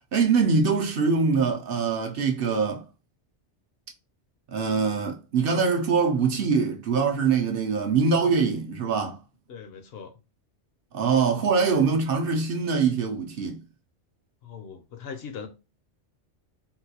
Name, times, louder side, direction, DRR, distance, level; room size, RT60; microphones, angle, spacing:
voice 1, 0.1-2.9 4.5-9.2 10.9-13.6, right 5 dB, 60° right, 0.7 m, -23 dB
voice 2, 9.5-10.2 14.4-15.5, left 6 dB, 65° left, 0.7 m, -40 dB
3.8 x 2.2 x 2.7 m
omnidirectional pair, 1.2 m